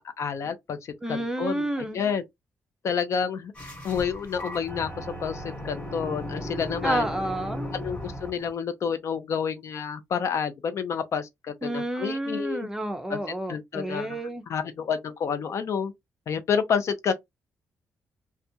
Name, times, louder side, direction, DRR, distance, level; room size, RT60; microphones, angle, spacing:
voice 1, 0.2-2.2 2.8-3.5 3.8-7.1 7.7-12.7 13.1-13.2 13.5-15.9 16.3-17.1, left 6 dB, 55° left, 0.5 m, -29 dB
voice 2, 1.0-2.0 6.8-7.7 11.6-14.4, right 1 dB, 10° right, 0.4 m, -30 dB
sound 1, 3.5-8.5, equal, 20° left, 1.0 m, -36 dB
2.4 x 2.2 x 2.7 m
wide cardioid pair, 150°, 6 cm